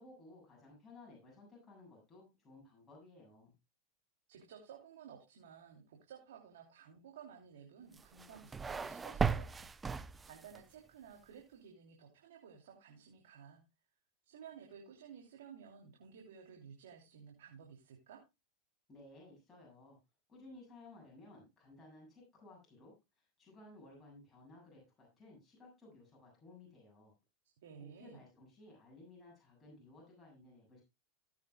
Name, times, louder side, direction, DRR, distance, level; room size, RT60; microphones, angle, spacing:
voice 1, 0.0-3.5 18.9-20.0 20.3-27.1 28.0-30.8, left 2 dB, 15° left, -4 dB, 7.5 m, -57 dB
voice 2, 4.3-13.6 14.2-18.2 27.6-28.2, right 7 dB, 75° right, 1 dB, 3.1 m, -55 dB
sound 1, 7.9-10.6, right 5 dB, 15° right, 0.6 m, -37 dB
18.0 x 8.8 x 2.3 m, 0.24 s
hypercardioid pair, 100°, 0 cm